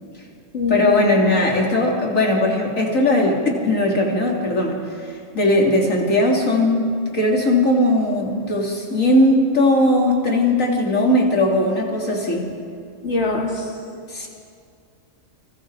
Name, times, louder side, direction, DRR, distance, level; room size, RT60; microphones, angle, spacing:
voice 1, 0.7-12.5 14.1-14.3, left 1 dB, 85° left, -1 dB, 3.5 m, -19 dB
voice 2, 13.0-13.7, left 3 dB, 55° left, -1 dB, 2.9 m, -23 dB
30.0 x 26.0 x 4.8 m, 2.3 s
omnidirectional pair, 1.3 m